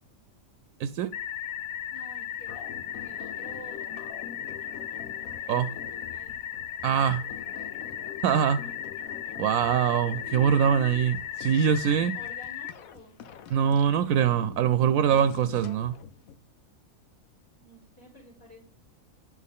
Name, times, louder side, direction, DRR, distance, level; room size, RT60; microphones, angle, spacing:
voice 1, 0.8-1.1 5.5-5.7 6.8-7.2 8.2-8.7 9.4-12.1 13.5-16.0, right 8 dB, 80° right, 1.0 m, -23 dB
sound 1, 1.1-12.7, left 10 dB, 60° left, 0.7 m, -36 dB
voice 2, 1.9-2.7 2.9-4.0 5.4-6.4 10.2-11.1 11.9-13.4 15.0-15.2 17.6-18.6, left 1 dB, 45° left, 3.7 m, -49 dB
sound 2, 2.5-16.4, left 8 dB, 85° left, 1.2 m, -45 dB
10.5 x 6.4 x 3.6 m
omnidirectional pair, 1.4 m